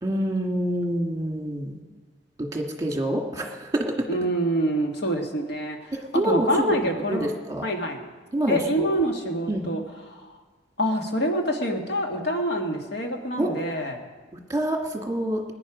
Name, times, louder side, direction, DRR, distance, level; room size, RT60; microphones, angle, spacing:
voice 1, 0.0-1.8 2.4-3.9 6.1-6.7 7.1-7.7 8.3-8.8 9.5-9.7 13.4-13.5 14.3-15.4, right 1 dB, 20° right, 1 dB, 2.0 m, -26 dB
voice 2, 4.1-7.3 7.6-8.0 8.5-9.8 10.1-10.4 10.8-14.0, equal, 65° left, 2 dB, 1.9 m, -26 dB
20.5 x 10.5 x 5.1 m, 1.4 s
head